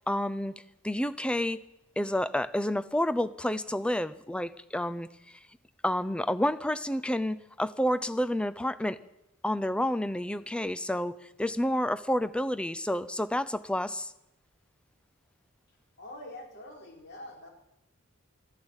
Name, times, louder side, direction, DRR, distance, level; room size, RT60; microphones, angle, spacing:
voice 1, 0.1-0.5 0.8-1.6 2.0-5.4 5.8-9.0 9.4-14.1, left 1 dB, 5° left, 13 dB, 0.5 m, -29 dB
voice 2, 16.0-17.5, left 1 dB, 50° left, 0 dB, 4.0 m, -45 dB
14.0 x 11.0 x 8.9 m, 0.87 s
head